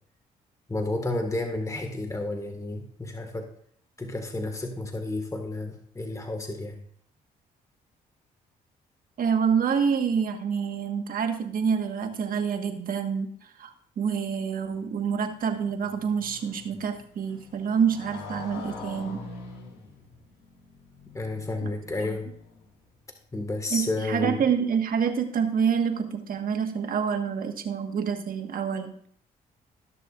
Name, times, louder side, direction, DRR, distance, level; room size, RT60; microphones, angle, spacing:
voice 1, 0.7-3.5 4.0-6.8 21.1-22.2 23.3-24.4, left 2 dB, 20° left, 4 dB, 1.8 m, -31 dB
voice 2, 9.2-13.3 13.6-19.2 23.7-28.9, right 6 dB, 55° right, 6 dB, 1.5 m, -27 dB
Motorcycle, 14.7-22.9, left 3 dB, 85° left, 2.8 m, -45 dB
20.0 x 6.7 x 2.5 m, 0.62 s
supercardioid pair, 70°, 17 cm